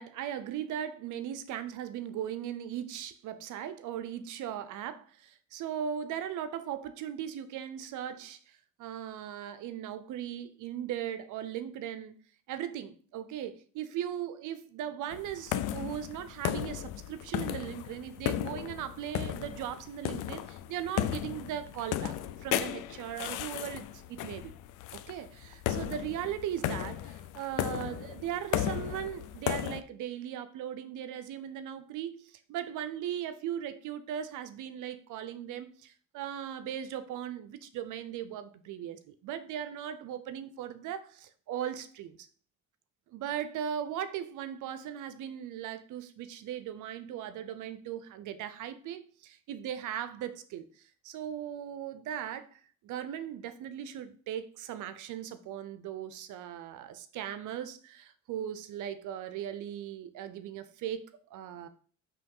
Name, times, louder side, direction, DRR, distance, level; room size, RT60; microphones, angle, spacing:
voice 1, 0.0-12.2 12.5-24.5 24.9-42.2 43.1-50.7 51.0-61.7, right 10 dB, 85° right, 0.7 m, -38 dB
sound 1, 15.1-29.8, left 12 dB, 85° left, 0.5 m, -35 dB
5.8 x 3.1 x 5.4 m
cardioid pair, 90°, 30 cm